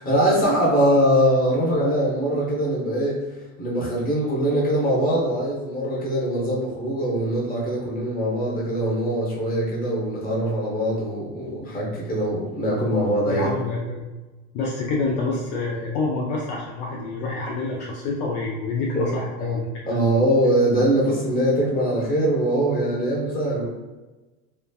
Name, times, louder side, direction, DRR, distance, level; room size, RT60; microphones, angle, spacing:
voice 1, 0.0-3.2 3.6-13.5 18.9-19.6 19.8-23.6, right 1 dB, 20° left, -4 dB, 1.1 m, -22 dB
voice 2, 13.3-14.1 14.5-19.7, left 3 dB, 55° left, -3 dB, 0.6 m, -27 dB
3.2 x 2.1 x 2.3 m, 1.2 s
supercardioid pair, 105°, 39 cm